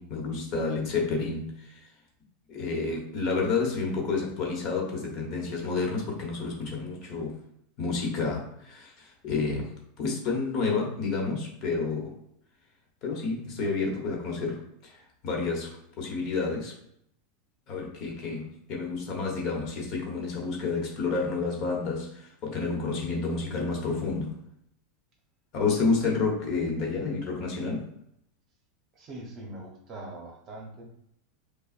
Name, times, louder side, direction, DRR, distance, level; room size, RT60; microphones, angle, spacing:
voice 1, 0.0-1.9 2.5-7.4 7.8-12.1 13.0-16.7 17.7-24.4 25.5-27.9, left 4 dB, 40° left, 0 dB, 1.2 m, -30 dB
voice 2, 28.9-30.8, right 2 dB, 30° right, 1 dB, 0.9 m, -42 dB
5.5 x 2.3 x 2.5 m, 0.73 s
supercardioid pair, 150°, 0 cm